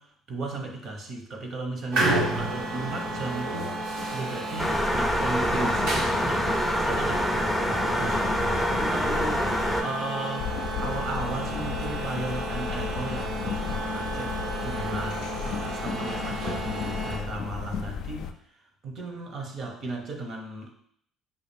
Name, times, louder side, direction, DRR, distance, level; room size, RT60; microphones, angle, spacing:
voice 1, 0.0-8.3 8.7-10.5 10.8-14.3 14.6-18.3 18.8-20.7, right 2 dB, 50° right, 2 dB, 0.9 m, -35 dB
Old & Noisy Elevator, 1.9-17.2, right 1 dB, 80° right, 1.2 m, -31 dB
sound 1, 4.6-9.8, left 1 dB, 5° left, 0.5 m, -26 dB
sound 2, 10.4-18.3, left 7 dB, 70° left, 0.3 m, -35 dB
5.5 x 2.4 x 3.4 m, 0.66 s
cardioid pair, 100°, 0 cm